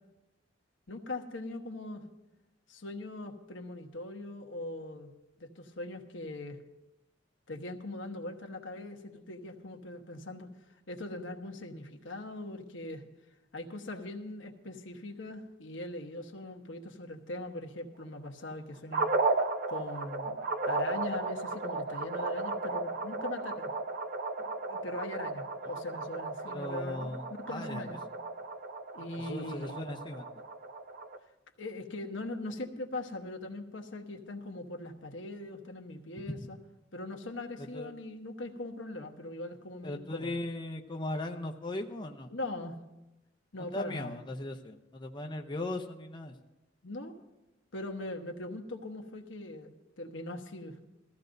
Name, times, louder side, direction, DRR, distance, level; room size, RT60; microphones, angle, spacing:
voice 1, 0.9-2.0 2.7-5.1 5.4-6.6 7.5-13.0 13.5-19.1 19.7-20.4 20.7-23.7 24.4-28.0 28.9-29.8 31.6-36.6 36.9-40.3 42.3-42.8 43.5-44.1 46.8-47.1 47.7-50.9, left 2 dB, 80° left, 4 dB, 1.2 m, -41 dB
sound 1, 18.9-31.2, right 3 dB, 50° right, 0.7 m, -35 dB
voice 2, 26.5-28.0 29.2-30.2 37.6-37.9 39.8-42.3 43.7-46.3, left 1 dB, 25° left, 3 dB, 0.6 m, -38 dB
20.0 x 14.5 x 2.6 m, 0.97 s
head